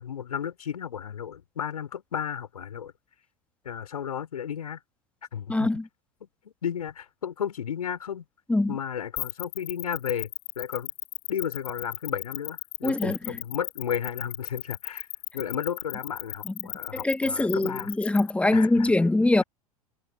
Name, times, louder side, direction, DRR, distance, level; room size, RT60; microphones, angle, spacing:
voice 1, 0.0-2.9 3.6-4.8 5.3-5.7 6.2-8.2 8.7-10.9 11.3-15.1 15.3-17.9 18.5-18.9, left 8 dB, 75° left, 5.0 m, -33 dB
voice 2, 5.5-5.8 8.5-8.7 12.8-13.2 16.5-16.6 17.0-19.4, left 2 dB, 5° left, 1.5 m, -23 dB
sound 1, 9.2-18.3, left 29 dB, 55° left, 2.9 m, -35 dB
figure-of-eight pair, 85°, 20 cm